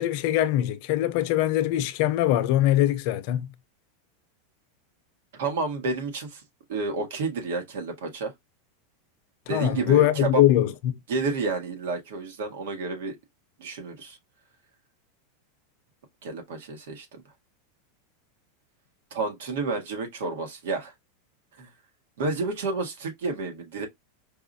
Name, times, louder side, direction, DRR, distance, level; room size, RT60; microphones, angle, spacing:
voice 1, 0.0-3.5 9.5-11.0, left 13 dB, 55° left, 0.6 m, -22 dB
voice 2, 5.4-6.4 6.7-8.3 9.5-10.4 11.1-13.2 13.6-14.2 16.2-17.2 19.1-20.9 21.6-21.7 22.2-23.9, right 3 dB, 80° right, 1.4 m, -30 dB
4.7 x 2.4 x 2.6 m
supercardioid pair, 140°, 0 cm